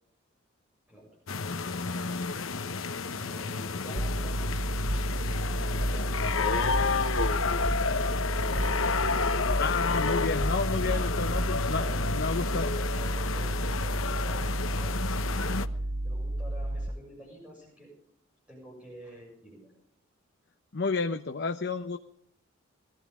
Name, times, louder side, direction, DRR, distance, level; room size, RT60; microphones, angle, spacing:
sound 1, 1.3-15.7, left 4 dB, 85° left, 1.0 m, -31 dB
voice 1, 2.0-2.3 9.6-11.9 12.1-12.7 20.7-22.0, left 4 dB, 60° left, 7 dB, 0.8 m, -31 dB
voice 2, 3.0-4.9 5.5-8.8 10.9-11.4 11.8-15.2 16.0-17.9 18.5-19.7, equal, 5° right, -3 dB, 7.2 m, -49 dB
sound 2, 4.0-16.9, right 1 dB, 25° right, 0.6 m, -31 dB
22.5 x 15.5 x 3.7 m, 0.65 s
head